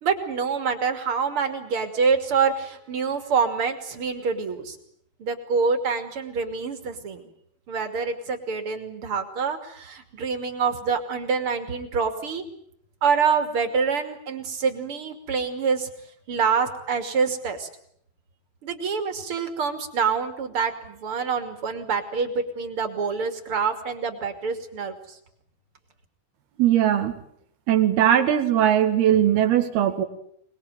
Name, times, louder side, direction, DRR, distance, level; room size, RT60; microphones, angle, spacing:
voice 1, 0.0-4.8 5.2-7.2 7.7-12.4 13.0-15.9 16.3-17.7 18.6-25.2, right 5 dB, 40° right, 7 dB, 3.2 m, -26 dB
voice 2, 26.6-27.2 27.7-30.0, right 10 dB, 85° right, 7 dB, 3.9 m, -20 dB
25.5 x 21.0 x 9.2 m, 0.68 s
omnidirectional pair, 4.4 m